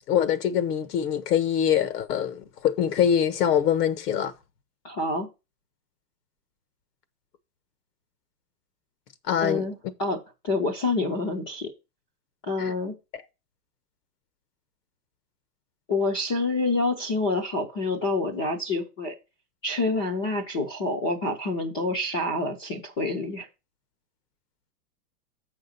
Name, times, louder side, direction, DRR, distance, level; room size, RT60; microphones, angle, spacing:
voice 1, 0.1-4.3 9.3-9.7 12.6-12.7, left 9 dB, 85° left, 1.4 m, -24 dB
voice 2, 4.8-5.3 9.4-10.2 10.4-11.7 12.4-12.9 15.9-19.1 19.6-23.5, left 2 dB, 15° left, 0.4 m, -27 dB
7.8 x 5.0 x 5.6 m
supercardioid pair, 170°, 47 cm